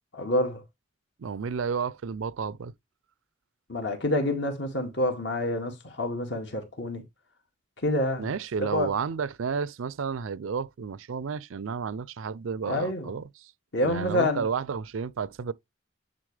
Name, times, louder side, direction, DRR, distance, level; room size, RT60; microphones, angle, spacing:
voice 1, 0.1-0.6 3.7-7.0 7.8-8.3 8.6-8.9 12.7-13.1 13.7-14.5, left 1 dB, 65° left, 2.2 m, -27 dB
voice 2, 1.2-2.7 8.2-13.2 13.8-15.5, right 6 dB, 85° right, 0.4 m, -31 dB
9.8 x 4.1 x 3.3 m
head